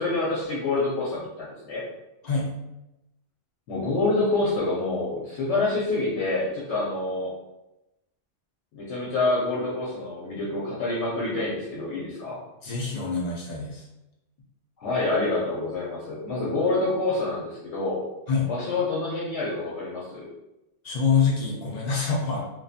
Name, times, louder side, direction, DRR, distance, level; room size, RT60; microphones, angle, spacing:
voice 1, 0.0-1.8 3.7-7.3 8.7-12.4 14.8-18.0 18.5-20.3, left 2 dB, 85° left, -7 dB, 0.9 m, -27 dB
voice 2, 12.6-13.9 18.3-18.5 20.8-22.4, left 5 dB, 55° left, -4 dB, 0.5 m, -25 dB
2.6 x 2.2 x 2.4 m, 0.94 s
omnidirectional pair, 1.2 m